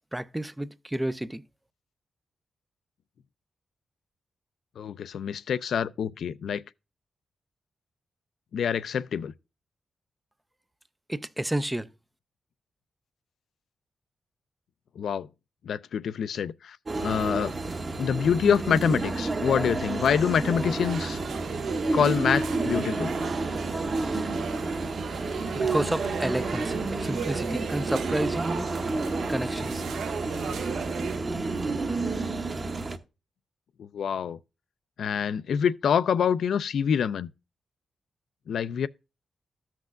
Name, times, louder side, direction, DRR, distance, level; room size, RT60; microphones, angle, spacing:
voice 1, 0.1-1.4 11.1-11.9 25.5-28.7 29.3-29.9, right 1 dB, 5° right, 0.3 m, -30 dB
voice 2, 4.8-6.6 8.5-9.3 15.0-15.3 15.6-17.5 18.0-21.2 21.9-23.1 33.8-34.4 35.0-37.3 38.5-38.9, left 7 dB, 70° left, 0.4 m, -26 dB
sound 1, 16.9-33.0, right 3 dB, 25° right, 0.8 m, -30 dB
sound 2, 20.8-31.2, right 6 dB, 75° right, 0.7 m, -36 dB
14.0 x 5.9 x 2.4 m
wide cardioid pair, 175°, 0 cm